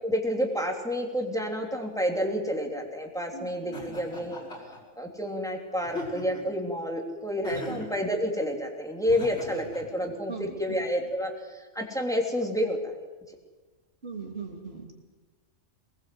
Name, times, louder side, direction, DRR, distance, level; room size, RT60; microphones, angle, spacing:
voice 1, 0.0-4.4 5.0-12.9, equal, ahead, 1 dB, 3.2 m, -29 dB
voice 2, 3.3-3.8 7.7-7.9 10.3-10.8 14.0-15.0, right 5 dB, 50° right, 2 dB, 3.0 m, -40 dB
Laughter, 3.7-4.8 5.8-6.5 7.4-7.9 9.0-9.8, left 2 dB, 60° left, 6.3 m, -39 dB
23.5 x 20.0 x 7.8 m, 1.3 s
omnidirectional pair, 1.4 m